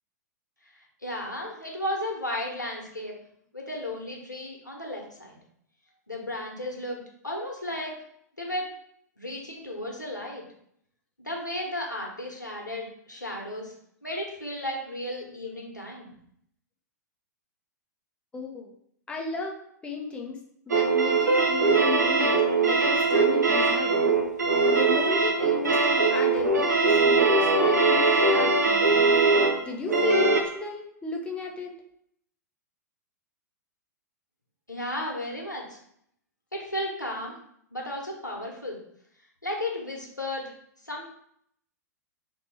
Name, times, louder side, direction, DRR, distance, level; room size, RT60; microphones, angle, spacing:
voice 1, 1.0-3.1 3.5-5.4 6.1-7.9 8.4-8.6 9.2-10.4 11.2-13.7 14.0-16.1 34.7-35.8 36.5-37.4 37.7-38.8 39.4-40.5 40.8-41.1, left 1 dB, 85° left, -1 dB, 1.1 m, -34 dB
voice 2, 18.3-18.7 19.1-19.5 19.8-20.4 20.7-24.0 24.7-29.1 29.6-31.8, left 5 dB, 10° left, 0 dB, 0.6 m, -35 dB
sound 1, 20.7-30.4, right 3 dB, 75° right, 0.7 m, -21 dB
3.0 x 2.9 x 4.3 m, 0.69 s
figure-of-eight pair, 105°, 10 cm